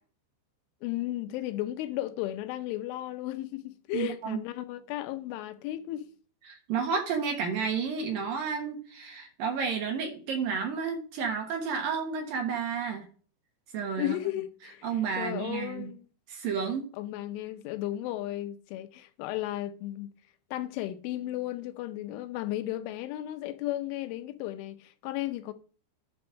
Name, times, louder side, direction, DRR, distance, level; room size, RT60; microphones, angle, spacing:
voice 1, 0.8-6.0 14.0-14.9 15.2-16.1 17.0-20.1 20.5-25.5, left 14 dB, 90° left, 3.3 m, -34 dB
voice 2, 3.9-4.4 6.5-13.1 13.7-14.1 14.8-15.9 16.3-16.8, right 6 dB, 65° right, 2.6 m, -31 dB
11.0 x 4.3 x 6.2 m
omnidirectional pair, 5.4 m